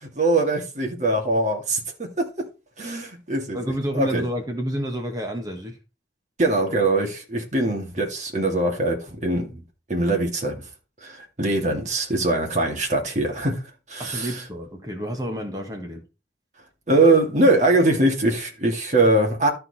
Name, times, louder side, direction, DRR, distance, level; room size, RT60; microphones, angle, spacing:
voice 1, 0.0-2.5 2.8-3.6 3.9-4.2 6.4-9.6 9.9-10.6 11.0-13.6 13.9-14.3 16.9-19.5, right 2 dB, 40° right, 2.4 m, -22 dB
voice 2, 3.5-5.8 14.0-16.1, equal, 20° right, 1.4 m, -29 dB
13.0 x 4.6 x 4.2 m
head